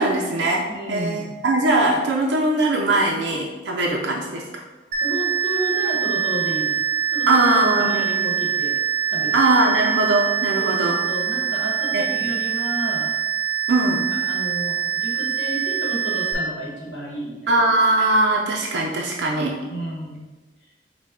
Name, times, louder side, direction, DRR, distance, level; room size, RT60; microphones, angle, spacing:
voice 1, 0.0-4.4 7.3-8.1 9.3-11.0 11.9-12.3 13.7-14.0 17.5-19.6, right 2 dB, 85° right, -1 dB, 0.5 m, -20 dB
voice 2, 0.7-1.3 5.0-6.8 7.1-8.7 9.1-9.4 10.6-13.1 14.2-17.5 19.7-20.2, right 1 dB, 80° left, -2 dB, 1.1 m, -31 dB
sound 1, 4.9-16.3, right 9 dB, 45° right, 0.7 m, -24 dB
5.2 x 2.2 x 3.7 m, 1.2 s
head